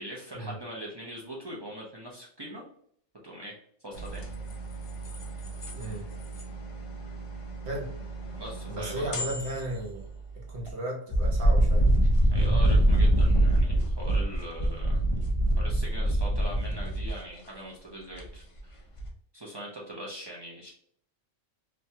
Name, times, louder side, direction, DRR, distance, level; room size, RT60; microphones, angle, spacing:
voice 1, 0.0-2.6 3.2-4.3 8.4-9.1 12.3-15.1 15.6-18.8 19.3-20.7, right 1 dB, 35° right, -5 dB, 0.4 m, -41 dB
sound 1, 3.9-10.7 11.1-17.2 18.2-18.6 19.0-19.1, right 1 dB, 45° left, 0.4 m, -26 dB
voice 2, 5.8-6.1 7.6-7.9 8.7-10.1 10.3-11.9, right 1 dB, 65° right, -1 dB, 1.2 m, -35 dB
3.0 x 2.3 x 2.7 m, 0.64 s
omnidirectional pair, 1.2 m